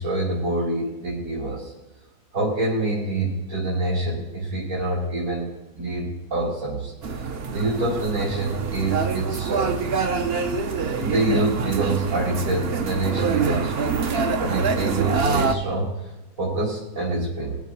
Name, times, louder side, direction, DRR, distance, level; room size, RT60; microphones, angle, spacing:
voice 1, 0.0-1.7 2.3-6.9 7.5-9.8 11.0-14.0 14.4-15.9 16.4-17.6, right 2 dB, 75° right, -8 dB, 3.0 m, -26 dB
sound 1, 7.0-15.6, right 5 dB, 50° right, 0.9 m, -25 dB
20.5 x 7.3 x 4.2 m, 1.0 s
omnidirectional pair, 1.5 m